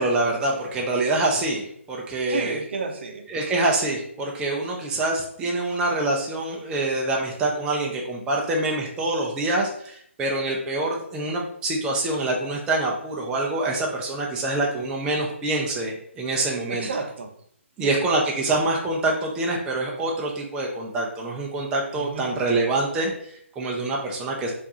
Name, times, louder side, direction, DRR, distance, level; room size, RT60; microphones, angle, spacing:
voice 1, 0.0-2.6 3.3-16.9 17.8-24.5, right 2 dB, 10° right, -2 dB, 0.4 m, -25 dB
voice 2, 2.3-3.3 16.7-17.3 17.8-18.1 21.9-22.3, right 4 dB, 55° right, 4 dB, 0.6 m, -31 dB
4.4 x 2.5 x 2.7 m, 0.66 s
figure-of-eight pair, 145°, 7 cm